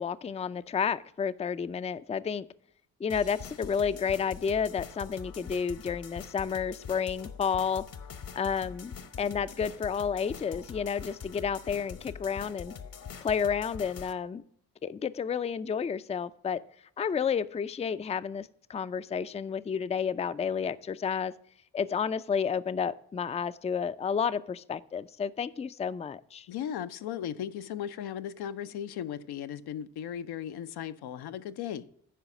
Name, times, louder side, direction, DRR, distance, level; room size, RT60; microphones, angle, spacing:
voice 1, 0.0-2.5 3.0-7.9 8.3-12.7 13.2-14.4 14.8-16.6 17.0-21.3 21.7-26.5, left 6 dB, 15° left, 0.4 m, -31 dB
sound 1, 3.1-14.1, left 6 dB, 60° left, 1.0 m, -44 dB
voice 2, 26.5-31.8, left 9 dB, 75° left, 0.6 m, -36 dB
10.0 x 4.8 x 6.0 m
supercardioid pair, 45°, 39 cm